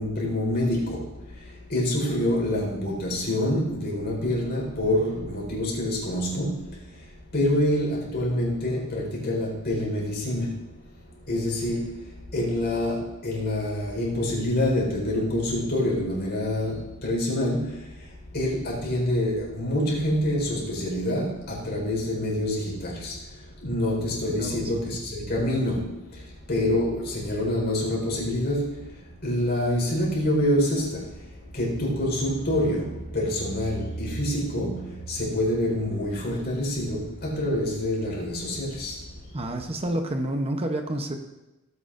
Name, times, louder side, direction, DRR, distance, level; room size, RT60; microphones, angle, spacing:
voice 1, 0.0-10.8 11.2-39.2, left 1 dB, 50° left, -2 dB, 4.4 m, -27 dB
voice 2, 24.2-24.6 39.3-41.1, right 1 dB, 30° right, 5 dB, 0.8 m, -29 dB
17.5 x 9.4 x 2.6 m, 0.99 s
head